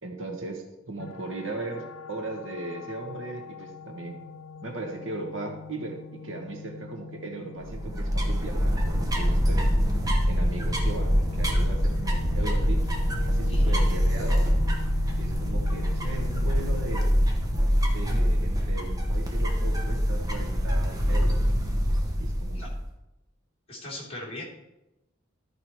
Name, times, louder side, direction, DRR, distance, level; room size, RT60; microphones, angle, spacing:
voice 1, 0.0-4.2 4.6-9.7 10.3-12.9 13.2-14.5 15.2-17.2 17.9-21.5 22.2-22.6, right 2 dB, 65° right, 3 dB, 1.3 m, -37 dB
sound 1, 1.0-17.0, left 4 dB, 75° left, 0.5 m, -41 dB
sound 2, 7.6-22.9, equal, 20° right, 1.1 m, -25 dB
voice 2, 23.7-24.4, left 1 dB, 30° left, -6 dB, 3.1 m, -39 dB
13.0 x 4.9 x 4.5 m, 0.96 s
head